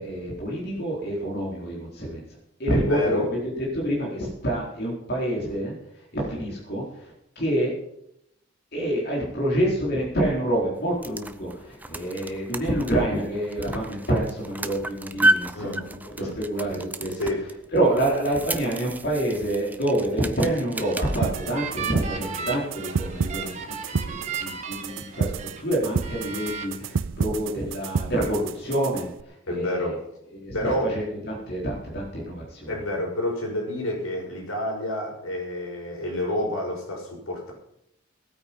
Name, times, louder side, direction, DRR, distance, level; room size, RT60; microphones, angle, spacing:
voice 1, 0.0-2.2 2.6-3.3 3.6-7.7 8.7-17.2 17.7-25.3 25.6-29.9 30.3-32.7, right 1 dB, 50° left, -4 dB, 4.3 m, -27 dB
voice 2, 2.7-3.3 15.5-15.8 16.2-16.3 17.2-17.5 29.5-30.0 30.5-30.9 32.7-37.5, left 1 dB, 85° left, 0 dB, 6.1 m, -28 dB
sound 1, 10.7-21.2, right 1 dB, 10° right, 0.6 m, -31 dB
sound 2, 20.5-25.6 26.0-26.6, right 6 dB, 35° right, 1.8 m, -35 dB
sound 3, 21.2-29.2, right 5 dB, 65° right, 0.5 m, -30 dB
19.0 x 8.9 x 5.5 m, 0.78 s
head